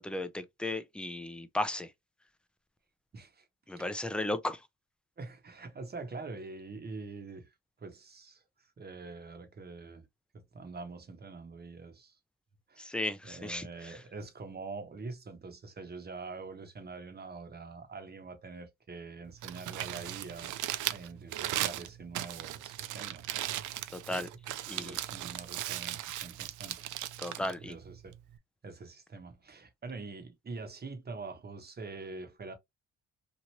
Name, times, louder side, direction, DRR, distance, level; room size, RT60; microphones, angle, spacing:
voice 1, 0.0-1.9 3.7-4.6 12.8-13.9 23.9-24.3 24.7-25.0 27.2-27.7, left 1 dB, 5° left, 0.4 m, -35 dB
voice 2, 3.1-3.9 5.2-10.1 10.3-12.2 12.7-13.0 13.2-23.3 24.1-26.9 27.2-28.2 28.6-32.5, right 3 dB, 35° right, 1.0 m, -45 dB
Crumpling crinkling, 19.3-28.4, right 14 dB, 80° right, 0.5 m, -38 dB
3.0 x 2.5 x 2.8 m
cardioid pair, 90°, 30 cm